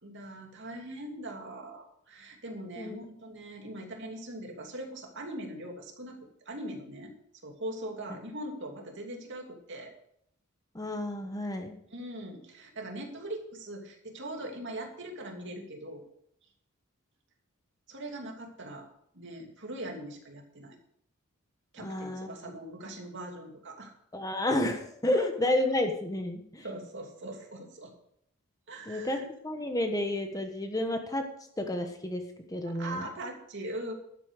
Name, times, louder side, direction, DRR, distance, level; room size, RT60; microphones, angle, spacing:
voice 1, 0.0-6.2 6.5-7.1 7.4-9.9 11.9-16.0 17.9-18.9 19.1-20.8 21.7-23.9 25.1-25.5 26.6-27.9 28.7-29.2 32.7-33.9, right 1 dB, 55° right, 2 dB, 2.8 m, -41 dB
voice 2, 10.7-11.8 21.8-22.3 24.1-26.6 28.9-31.3 31.6-32.2 32.5-33.0, left 1 dB, 15° left, 5 dB, 1.2 m, -30 dB
12.0 x 8.3 x 6.5 m, 0.71 s
head